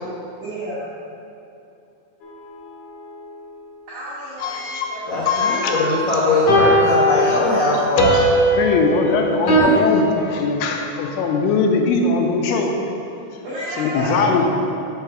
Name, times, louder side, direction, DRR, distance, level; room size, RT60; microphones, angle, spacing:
voice 1, 0.4-0.9 3.9-6.4 13.4-14.5, equal, 85° right, -9 dB, 1.7 m, -32 dB
sound 1, 2.2-2.3 6.5-9.6, equal, 50° left, 2.1 m, -18 dB
voice 2, 4.4-4.9 5.3-5.9 8.1-8.3 8.6-12.7 13.8-14.5, left 4 dB, 85° left, 2 dB, 3.3 m, -20 dB
voice 3, 5.1-8.2 9.6-10.0, left 2 dB, 70° left, -8 dB, 2.1 m, -20 dB
6.0 x 5.6 x 6.9 m, 2.7 s
omnidirectional pair, 5.6 m